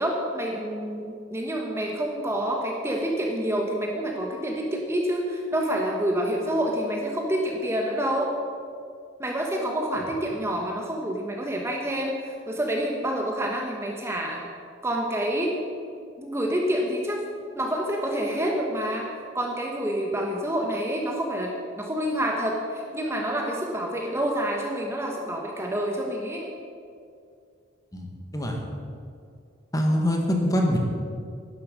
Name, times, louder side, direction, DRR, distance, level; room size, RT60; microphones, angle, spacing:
voice 1, 0.0-8.3 9.2-14.4 14.8-15.6 16.2-17.2 17.6-26.5, right 1 dB, 15° right, 0 dB, 1.1 m, -28 dB
voice 2, 27.9-28.6 29.7-30.8, equal, 15° left, 1 dB, 1.5 m, -24 dB
11.0 x 11.0 x 6.5 m, 2.3 s
head